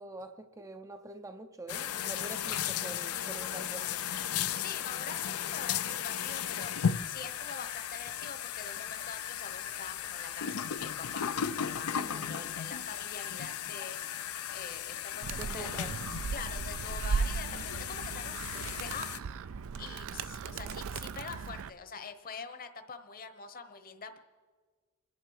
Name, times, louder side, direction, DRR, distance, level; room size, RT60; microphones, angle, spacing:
voice 1, 0.0-4.0 11.9-12.4 15.3-16.0, right 2 dB, 15° right, 7 dB, 0.5 m, -45 dB
sound 1, 1.7-19.2, left 9 dB, 75° left, 0.6 m, -36 dB
voice 2, 4.6-14.2 14.5-15.7 16.3-18.4 18.7-19.1 19.8-24.2, left 5 dB, 40° left, 9 dB, 1.1 m, -45 dB
Animal, 15.2-21.7, right 5 dB, 65° right, 0.5 m, -37 dB
27.0 x 10.5 x 4.8 m, 1.5 s
head